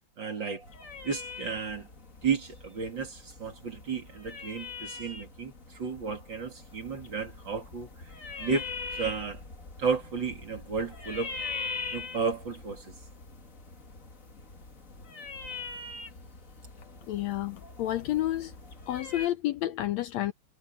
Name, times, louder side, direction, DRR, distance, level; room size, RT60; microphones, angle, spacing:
voice 1, 0.2-0.7 1.0-1.9 2.2-8.1 8.4-8.7 9.0-9.4 9.8-11.4 11.9-12.9, right 5 dB, 40° right, 3.1 m, -33 dB
sound 1, 0.6-19.3, left 4 dB, 30° left, 2.2 m, -42 dB
voice 2, 17.1-18.5 18.9-20.3, left 14 dB, 75° left, 1.8 m, -30 dB
omnidirectional pair, 3.5 m